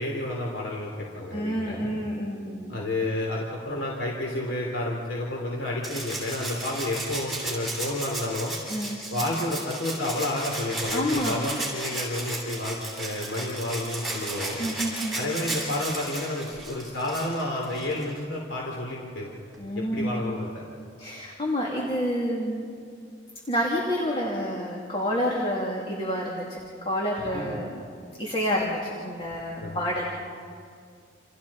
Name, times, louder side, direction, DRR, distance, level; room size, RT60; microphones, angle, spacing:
voice 1, 0.0-1.9 2.7-8.5 9.1-14.6 15.1-19.3 19.8-20.6 27.3-27.6 29.6-29.8, left 1 dB, 75° left, -2 dB, 3.5 m, -30 dB
voice 2, 1.3-2.8 8.7-9.0 10.9-11.4 14.6-15.2 19.6-20.4 21.0-22.7 23.5-27.8 28.2-30.0, equal, 30° left, -3 dB, 3.0 m, -29 dB
Rattle (instrument), 5.8-18.1 19.5-19.6, right 2 dB, ahead, 7.1 m, -34 dB
29.5 x 29.5 x 4.4 m, 2.2 s
head